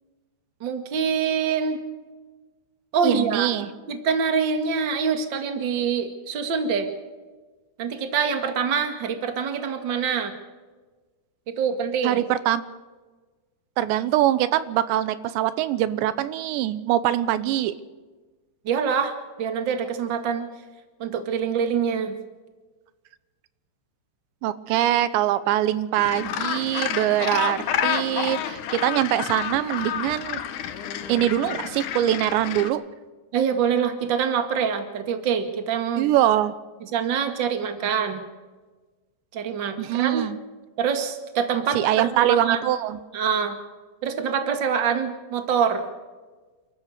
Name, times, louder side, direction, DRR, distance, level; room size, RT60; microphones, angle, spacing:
voice 1, 0.6-1.8 2.9-3.5 3.9-6.9 7.8-10.3 11.5-12.2 18.6-19.1 19.4-20.4 21.0-22.1 33.3-36.1 36.9-38.2 39.3-40.3 40.8-41.8 42.1-42.6 43.1-43.6 44.0-45.8, right 6 dB, 45° right, 6 dB, 1.5 m, -25 dB
voice 2, 3.0-3.7 12.0-12.6 13.8-17.7 24.4-30.4 31.1-32.8 36.0-36.5 39.8-40.4 41.7-43.0, right 12 dB, 85° right, 14 dB, 3.2 m, -23 dB
Gull seagull, 26.0-32.7, left 9 dB, 65° left, 2.1 m, -29 dB
29.0 x 13.5 x 6.6 m, 1.3 s
omnidirectional pair, 5.0 m